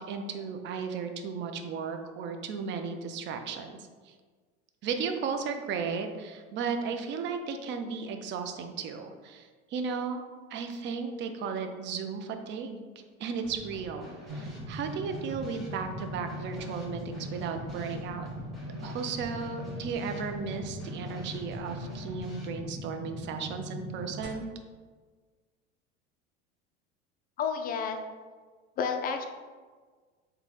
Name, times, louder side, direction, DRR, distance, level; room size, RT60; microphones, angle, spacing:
voice 1, 0.0-4.1 4.8-10.2 10.5-12.9 13.2-18.3 18.8-24.5, right 5 dB, 35° right, 6 dB, 0.4 m, -35 dB
Drum kit / Snare drum, 13.4-22.5, equal, ahead, 1.1 m, -48 dB
sound 1, 14.3-24.3, equal, 75° right, 0.9 m, -40 dB
voice 2, 27.4-28.0 28.8-29.2, left 6 dB, 25° left, 6 dB, 0.4 m, -30 dB
3.7 x 2.2 x 3.3 m, 1.5 s
hypercardioid pair, 90°, 34 cm